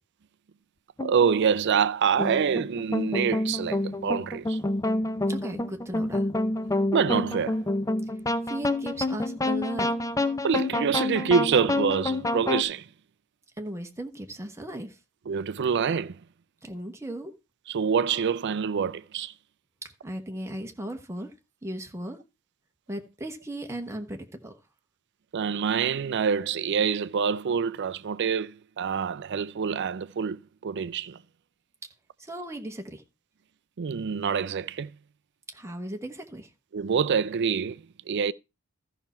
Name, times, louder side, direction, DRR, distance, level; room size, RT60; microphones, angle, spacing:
sound 1, 1.0-1.3 2.2-12.6, left 2 dB, 15° left, 0.6 m, -28 dB
voice 1, 1.0-4.6 6.9-7.6 10.4-12.9 15.3-16.2 17.7-19.3 25.3-31.2 33.8-35.0 36.7-38.3, right 6 dB, 55° right, 0.4 m, -26 dB
voice 2, 5.3-6.2 8.5-9.9 13.6-15.0 16.6-17.3 20.0-21.3 21.6-22.2 22.9-24.5 32.2-33.0 35.5-36.5, right 1 dB, 15° right, 1.2 m, -36 dB
13.5 x 5.8 x 4.3 m
head